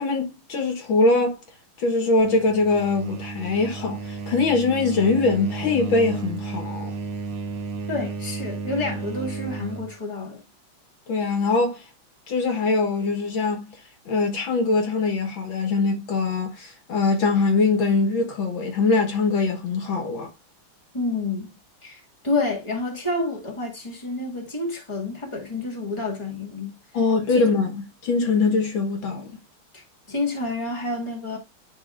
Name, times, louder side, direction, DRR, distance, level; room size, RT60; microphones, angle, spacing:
voice 1, 0.0-1.4 1.8-7.0 11.1-11.9 12.3-13.7 14.1-20.3 26.9-29.4, left 3 dB, 65° left, 2.0 m, -22 dB
sound 1, 2.2-9.9, right 4 dB, 55° right, 1.6 m, -33 dB
voice 2, 7.9-10.4 20.9-21.5 21.8-26.8 27.3-27.5 29.7-31.4, left 2 dB, 15° left, 2.0 m, -29 dB
12.0 x 4.1 x 2.5 m
omnidirectional pair, 2.3 m